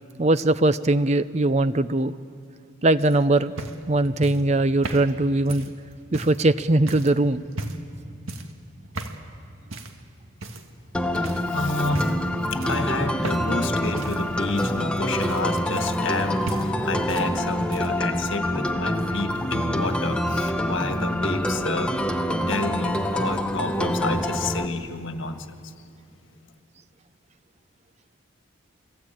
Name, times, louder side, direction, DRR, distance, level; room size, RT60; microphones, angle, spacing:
voice 1, 0.2-2.1 2.8-3.5 3.9-5.7 6.1-7.4, right 2 dB, 30° right, 14 dB, 0.6 m, -21 dB
sound 1, 3.0-6.4 6.9-7.2 7.5-7.9 8.3-8.6 8.9-9.2 9.7-10.0 10.4-10.9 11.2-11.5 11.9-12.3 12.6-13.7 13.9-16.2 16.5-17.3 17.6-18.0 19.0-19.1, right 2 dB, 80° right, 1.8 m, -36 dB
sound 2, 10.9-24.7, equal, 5° left, 1.0 m, -26 dB
voice 2, 11.1-12.1 12.5-21.9 22.5-25.7, left 3 dB, 65° left, 7 dB, 1.7 m, -30 dB
29.0 x 21.0 x 8.9 m, 2.6 s
head